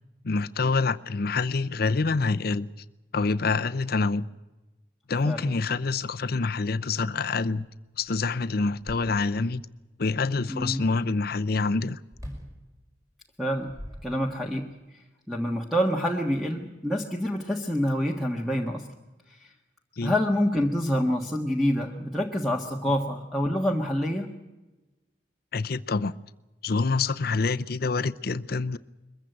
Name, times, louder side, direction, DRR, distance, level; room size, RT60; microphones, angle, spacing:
voice 1, 0.2-2.7 3.1-4.3 5.1-7.7 8.0-9.6 10.0-12.0 20.0-20.1 25.5-26.1 26.6-28.8, left 4 dB, 60° left, 0.6 m, -26 dB
voice 2, 10.5-10.8 13.4-13.7 14.0-14.7 14.9-18.9 19.4-19.5 20.0-24.3, equal, ahead, 1.5 m, -27 dB
sound 1, 12.1-12.6 13.4-14.6, equal, 20° right, 5.3 m, -43 dB
22.5 x 15.0 x 9.2 m
head